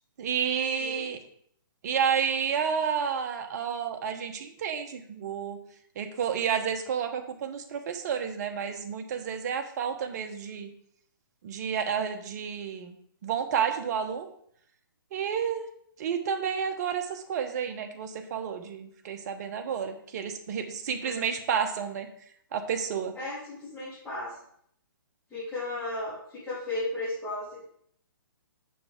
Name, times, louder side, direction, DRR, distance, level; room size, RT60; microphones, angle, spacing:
voice 1, 0.2-1.2 1.8-5.6 6.0-10.7 11.4-12.9 13.2-14.3 15.1-15.7 16.0-22.1 22.5-23.1, right 7 dB, 45° right, 6 dB, 1.0 m, -30 dB
voice 2, 0.8-1.1 21.0-21.3 23.1-24.3 25.3-27.6, left 2 dB, 10° left, -14 dB, 3.4 m, -35 dB
6.9 x 6.6 x 3.6 m, 0.66 s
hypercardioid pair, 145°, 12 cm